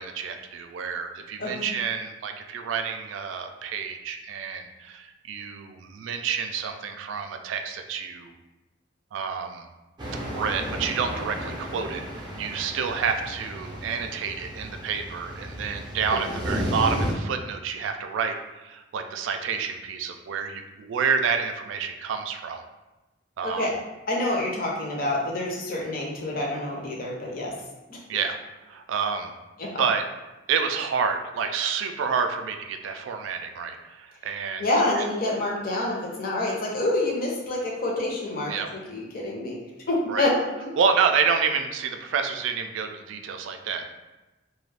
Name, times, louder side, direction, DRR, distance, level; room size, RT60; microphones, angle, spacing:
voice 1, 0.0-8.3 9.1-9.7 10.1-22.6 23.4-23.7 28.1-28.4 28.7-29.3 29.8-30.0 30.5-34.6 35.0-35.1 38.5-38.7 40.1-40.3 40.8-43.9, right 6 dB, 85° right, 6 dB, 0.3 m, -28 dB
voice 2, 1.4-1.7 16.2-16.3 23.4-23.7 24.1-27.5 27.9-28.0 29.6-29.8 34.6-38.5 38.9-39.6 39.9-40.3 40.6-40.7, left 2 dB, 50° left, -2 dB, 0.6 m, -27 dB
sound 1, 10.0-17.1, equal, 25° right, 0.5 m, -33 dB
2.4 x 2.2 x 3.2 m, 1.1 s
head